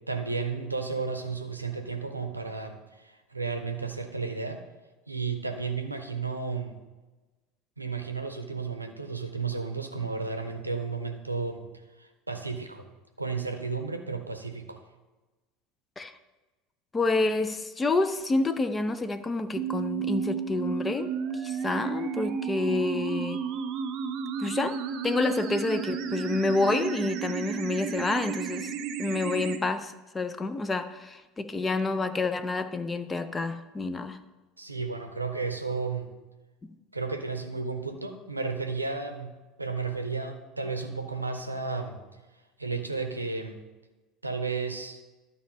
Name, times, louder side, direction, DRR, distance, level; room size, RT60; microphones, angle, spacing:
voice 1, 0.1-4.6 5.1-6.8 7.8-11.7 12.0-12.9 13.2-14.8 34.6-36.1 36.9-39.3 39.6-42.0 42.6-43.6 44.2-45.0, right 4 dB, 85° right, 0.7 m, -33 dB
voice 2, 16.9-23.4 24.4-24.8 25.0-28.7 29.0-34.2, left 3 dB, 20° left, 0.6 m, -28 dB
sound 1, 19.6-29.6, right 7 dB, 50° right, 0.6 m, -32 dB
12.0 x 4.2 x 5.3 m
figure-of-eight pair, 70°, 0 cm